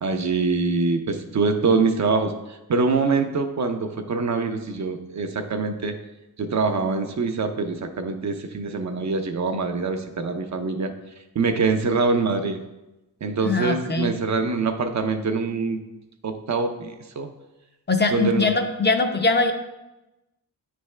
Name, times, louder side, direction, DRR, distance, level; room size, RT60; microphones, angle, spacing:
voice 1, 0.0-6.0 6.4-10.9 11.3-12.6 13.2-15.8 16.2-17.3 18.1-18.5, right 4 dB, 50° right, 5 dB, 0.6 m, -24 dB
voice 2, 13.4-14.1 17.9-19.5, left 3 dB, 30° left, 5 dB, 0.6 m, -21 dB
9.2 x 3.4 x 3.2 m, 1.0 s
cardioid pair, 85°, 36 cm